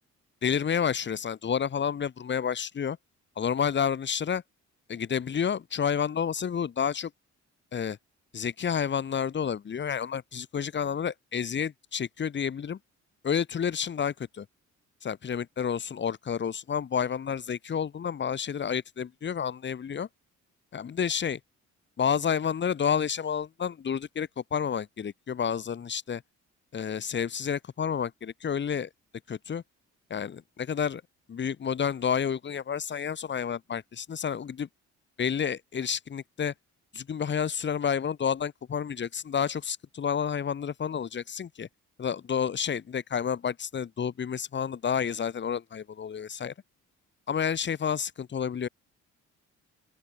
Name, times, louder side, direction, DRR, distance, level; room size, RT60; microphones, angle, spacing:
voice 1, 0.4-3.0 3.4-4.4 4.9-7.1 7.7-8.0 8.3-12.8 13.2-14.5 15.0-20.1 20.7-21.4 22.0-26.2 26.7-28.9 29.3-29.6 30.1-31.0 31.3-34.7 35.2-36.5 36.9-41.7 42.0-46.5 47.3-48.7, left 7 dB, 40° left, 1.1 m, -30 dB
open air
cardioid pair, 90°, 30 cm